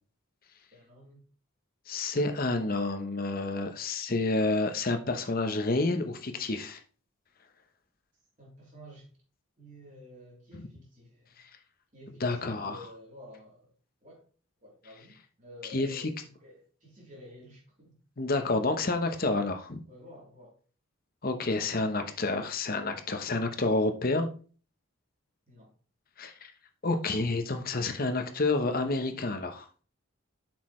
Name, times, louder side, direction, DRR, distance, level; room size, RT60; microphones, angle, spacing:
voice 1, 0.7-1.2 8.4-9.1 9.6-11.3 11.9-13.7 14.0-14.3 14.6-18.0 19.9-20.6 25.5-25.7, left 1 dB, 40° right, 3.4 m, -51 dB
voice 2, 1.9-6.8 12.2-12.8 15.7-16.0 18.2-19.8 21.2-24.3 26.2-26.5 26.8-29.7, left 2 dB, 45° left, 0.9 m, -29 dB
8.1 x 6.3 x 3.2 m
head